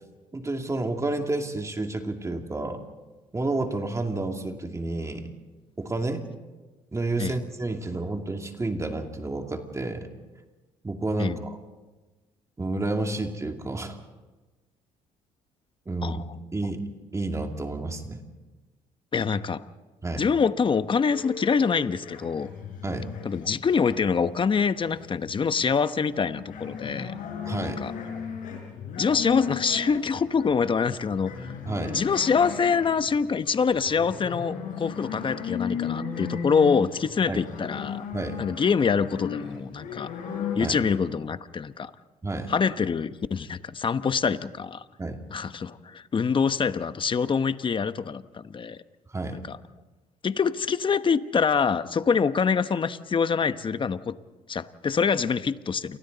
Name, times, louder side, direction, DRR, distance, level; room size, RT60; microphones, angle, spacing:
voice 1, 0.3-2.8 3.3-5.3 5.8-6.3 6.9-10.1 10.8-11.6 12.6-14.0 15.9-16.2 16.5-18.2 20.0-20.3 22.8-23.1 27.4-27.8 31.7-32.0 37.3-37.4 38.1-38.4 40.6-40.8 42.2-42.5 45.0-45.2 49.1-49.4, right 2 dB, 20° right, 4 dB, 2.5 m, -30 dB
voice 2, 19.1-19.6 20.2-22.5 23.2-27.1 27.8-27.9 29.0-31.5 31.8-38.1 38.4-40.1 40.5-41.9 42.5-44.8 45.3-48.8 49.5-49.6 50.2-54.2 54.5-56.0, left 6 dB, 35° left, 12 dB, 1.1 m, -25 dB
sound 1, 21.1-24.2 24.5-40.6, left 7 dB, 70° left, 5.7 m, -36 dB
29.0 x 24.0 x 4.1 m, 1.2 s
supercardioid pair, 75°, 14 cm